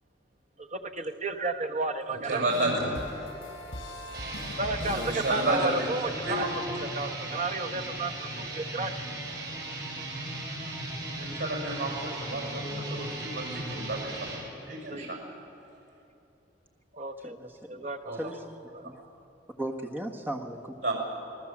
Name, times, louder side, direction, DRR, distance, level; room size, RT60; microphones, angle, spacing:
voice 1, 0.6-2.4 4.6-9.0 14.9-15.1 16.9-18.2 18.7-18.8, right 3 dB, 40° right, 5 dB, 1.2 m, -33 dB
voice 2, 2.1-2.9 4.8-5.9 6.2-6.6 11.1-14.3 14.7-15.3 18.0-18.2 20.8-20.9, right 2 dB, 85° right, 0 dB, 6.8 m, -31 dB
sound 1, 2.5-6.4, left 1 dB, 65° left, 5.1 m, -41 dB
sound 2, 4.0-14.4, right 1 dB, 60° right, 6.7 m, -37 dB
voice 3, 17.2-17.9 18.2-18.4 18.8-18.9 19.6-20.8, right 1 dB, 10° right, 1 dB, 1.6 m, -36 dB
27.5 x 19.5 x 7.5 m, 2.7 s
head